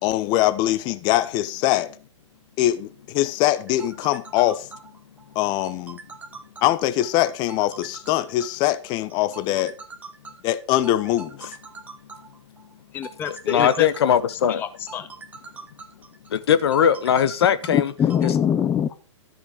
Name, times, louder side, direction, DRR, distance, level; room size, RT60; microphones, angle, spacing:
voice 1, 0.0-1.9 2.6-4.7 5.3-6.0 6.6-9.7 10.4-11.6, left 14 dB, 30° left, 0.8 m, -22 dB
sound 1, 3.5-18.3, right 4 dB, 10° right, 1.2 m, -43 dB
voice 2, 12.9-13.9 14.5-15.1 17.7-19.0, left 9 dB, 15° left, 0.4 m, -24 dB
voice 3, 13.5-14.6 16.3-17.9 18.2-18.3, left 8 dB, 55° left, 1.0 m, -20 dB
13.0 x 6.8 x 5.2 m
figure-of-eight pair, 115°, 16 cm